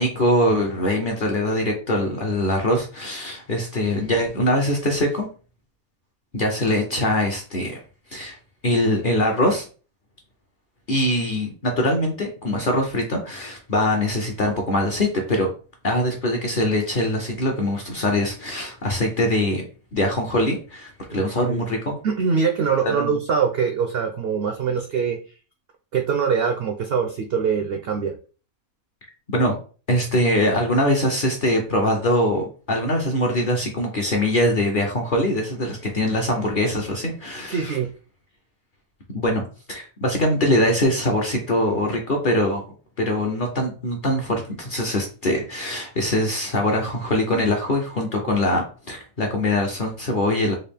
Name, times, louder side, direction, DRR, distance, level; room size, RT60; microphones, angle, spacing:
voice 1, 0.0-5.3 6.3-7.8 8.1-8.4 8.6-9.6 10.9-15.5 15.8-19.6 19.9-22.0 22.8-23.2 29.3-29.5 29.9-37.8 39.1-42.6 43.0-50.5, left 1 dB, 50° left, 1 dB, 0.6 m, -22 dB
voice 2, 21.1-21.6 22.0-25.2 25.9-28.2 37.5-37.9 48.5-48.6, right 6 dB, 75° right, 3 dB, 0.5 m, -23 dB
3.9 x 2.4 x 3.4 m, 0.37 s
omnidirectional pair, 1.5 m